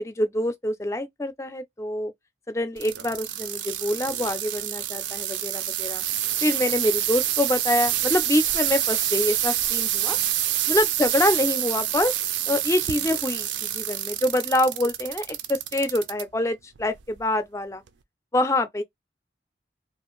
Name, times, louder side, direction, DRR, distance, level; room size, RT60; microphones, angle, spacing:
voice 1, 0.0-2.1 2.5-6.0 6.4-10.2 10.7-12.1 12.5-17.8 18.3-18.8, left 1 dB, 15° left, 0.4 m, -25 dB
sound 1, 2.8-16.2 16.8-17.2 17.9-18.0, right 11 dB, 85° right, 0.4 m, -27 dB
2.4 x 2.4 x 2.9 m
head